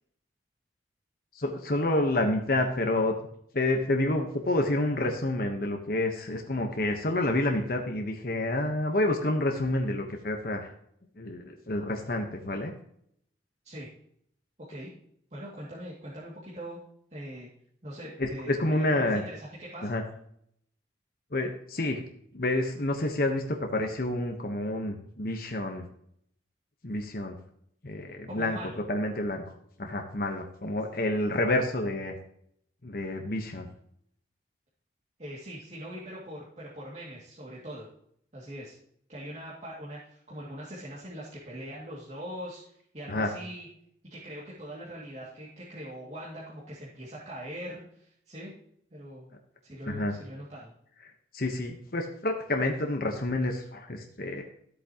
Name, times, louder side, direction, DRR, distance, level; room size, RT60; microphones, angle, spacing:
voice 1, 1.3-3.2 3.5-10.7 11.2-12.7 18.2-19.2 19.8-20.0 21.3-22.0 22.3-25.8 26.8-27.4 27.8-28.6 28.9-29.4 29.8-32.2 32.8-33.7 43.1-43.3 49.9-50.1 51.3-54.4, left 1 dB, 55° left, 3 dB, 1.2 m, -29 dB
voice 2, 15.3-16.8 17.1-17.5 17.8-19.9 28.3-28.8 35.2-37.9 38.3-38.8 39.1-43.7 44.0-48.5 48.9-49.3 49.6-50.7, equal, 40° right, -6 dB, 2.5 m, -42 dB
13.5 x 8.4 x 3.0 m, 0.68 s
head